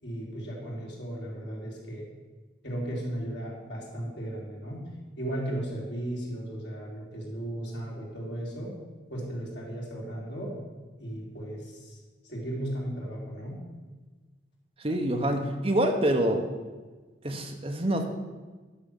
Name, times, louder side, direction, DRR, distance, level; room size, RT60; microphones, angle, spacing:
voice 1, 0.0-2.1 2.6-4.9 5.2-8.7 9.1-10.6 11.0-12.0 12.3-13.6, right 1 dB, 65° left, -3 dB, 3.4 m, -35 dB
voice 2, 14.8-16.5 17.2-18.0, right 1 dB, 30° right, 4 dB, 1.0 m, -26 dB
11.0 x 6.3 x 7.1 m, 1.3 s
head